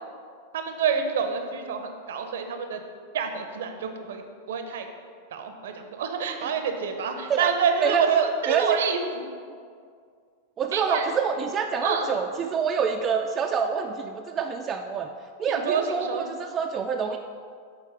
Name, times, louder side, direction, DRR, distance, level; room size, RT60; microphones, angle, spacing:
voice 1, 0.5-2.8 3.1-4.2 4.5-4.9 5.3-9.3 10.7-11.1 11.8-12.1 15.5-16.2, right 6 dB, 60° right, 6 dB, 0.7 m, -27 dB
voice 2, 8.5-8.8 10.6-15.1 15.4-17.2, right 6 dB, 25° right, 3 dB, 0.3 m, -27 dB
7.3 x 4.4 x 4.6 m, 2.1 s
figure-of-eight pair, 90°, 0 cm